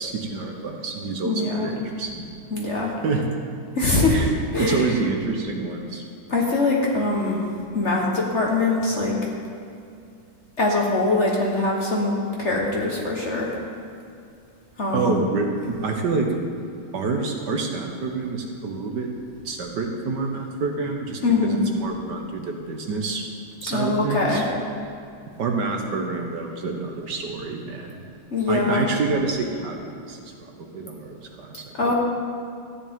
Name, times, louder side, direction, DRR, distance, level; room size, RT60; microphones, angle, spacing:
voice 1, 0.0-2.3 3.0-3.2 4.1-4.3 4.6-6.0 14.9-16.3 16.9-19.1 19.4-23.2 23.6-24.4 25.4-27.9 28.5-31.9, right 4 dB, 65° right, 2 dB, 1.5 m, -27 dB
voice 2, 1.2-1.7 2.5-2.9 3.7-4.2 4.5-4.9 6.3-7.4 7.7-9.1 10.6-13.5 14.8-15.1 21.2-21.6 23.7-24.4 28.3-28.8 31.8-31.9, left 3 dB, 40° left, -2 dB, 1.3 m, -22 dB
13.5 x 10.0 x 3.6 m, 2.5 s
omnidirectional pair, 2.1 m